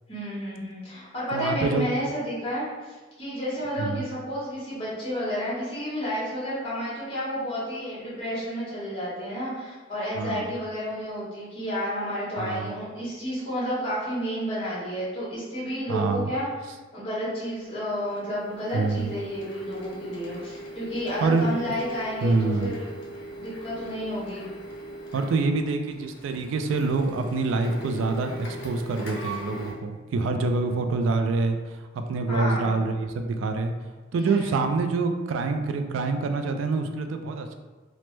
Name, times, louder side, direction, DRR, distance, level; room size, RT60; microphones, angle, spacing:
voice 1, 0.1-16.5 16.9-22.9 23.4-24.5 32.3-32.8 34.1-34.6, equal, 30° left, -9 dB, 1.3 m, -31 dB
voice 2, 1.3-1.9 3.8-4.0 10.2-10.5 12.4-12.7 15.9-16.3 18.7-19.1 21.2-21.5 22.2-22.7 25.1-33.7 34.1-37.5, right 3 dB, 90° right, 7 dB, 0.3 m, -26 dB
Printer, 17.3-29.7, right 1 dB, 65° left, 0.6 m, -40 dB
3.0 x 2.1 x 3.1 m, 1.3 s
head